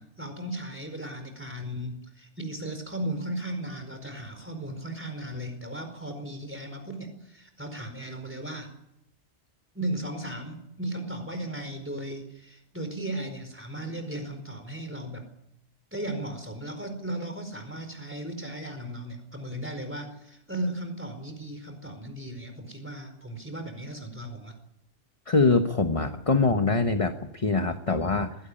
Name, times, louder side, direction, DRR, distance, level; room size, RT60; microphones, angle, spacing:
voice 1, 0.0-8.7 9.7-15.3 15.9-24.5, right 1 dB, 10° right, 6 dB, 4.7 m, -36 dB
voice 2, 25.3-28.4, left 3 dB, 30° left, 7 dB, 1.2 m, -24 dB
21.0 x 17.0 x 10.0 m, 0.82 s
omnidirectional pair, 1.2 m